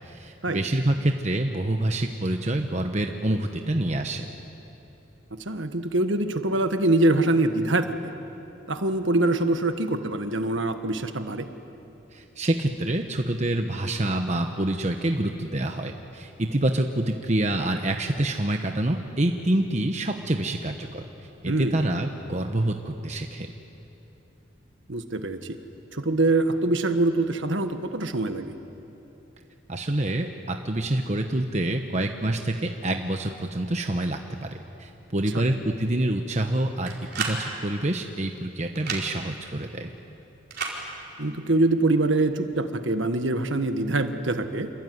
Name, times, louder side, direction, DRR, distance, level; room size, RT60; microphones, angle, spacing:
voice 1, 0.0-4.2 12.1-21.0 21.4-23.5 29.7-34.5 34.8-39.9, right 1 dB, 35° right, 4 dB, 1.0 m, -27 dB
voice 2, 5.3-8.1 8.7-11.5 21.4-21.8 24.9-25.6 25.9-28.5 35.3-35.4 41.2-44.7, right 2 dB, 65° right, 8 dB, 1.5 m, -24 dB
sound 1, 36.9-37.4 38.7-39.0 40.5-40.8, right 5 dB, 50° right, 4.4 m, -30 dB
27.5 x 22.5 x 9.5 m, 3.0 s
head